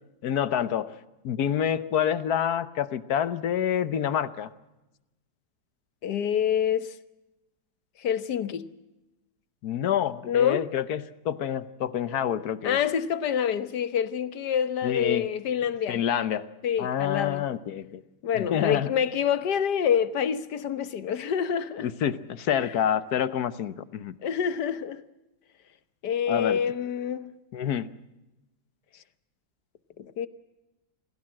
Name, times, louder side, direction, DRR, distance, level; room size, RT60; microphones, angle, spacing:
voice 1, 0.2-0.9 1.2-4.5 9.6-12.8 14.8-15.3 15.9-16.5 16.8-18.0 18.3-18.9 21.8-24.1 26.3-26.6 27.5-27.9, left 9 dB, 70° left, 1.4 m, -27 dB
voice 2, 6.0-6.9 8.0-8.7 10.2-10.6 12.6-16.0 16.6-17.4 18.2-21.9 22.5-22.7 24.2-25.0 26.0-27.3 30.0-30.3, left 8 dB, 90° left, 1.6 m, -27 dB
27.0 x 17.0 x 7.6 m
omnidirectional pair, 1.7 m